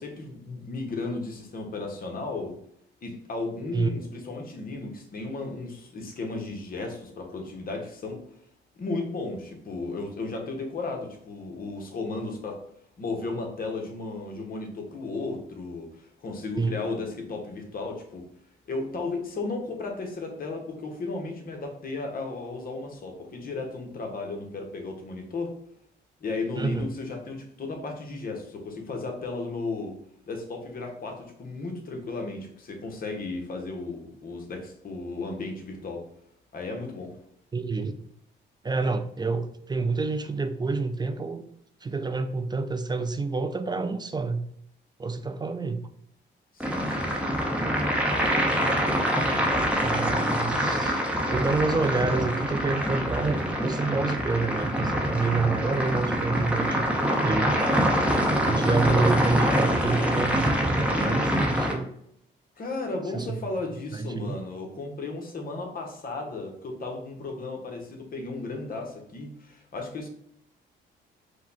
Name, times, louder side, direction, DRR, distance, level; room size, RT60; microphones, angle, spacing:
voice 1, 0.0-2.6 3.0-8.2 8.8-12.6 13.0-18.3 18.7-25.5 26.2-29.9 30.3-36.1 36.5-37.2 46.5-47.4 58.1-58.5 62.6-70.1, left 3 dB, 45° left, 3 dB, 1.1 m, -34 dB
voice 2, 26.6-26.9 37.5-38.0 38.6-41.4 41.8-44.5 45.0-45.8 48.4-48.7 49.8-51.0 51.3-57.6 58.5-61.9 63.1-63.4 63.9-64.4, right 3 dB, 20° right, 9 dB, 0.4 m, -28 dB
sound 1, 46.6-61.7, equal, 5° right, 0.9 m, -25 dB
4.9 x 2.3 x 4.1 m, 0.70 s
cardioid pair, 90°, 20 cm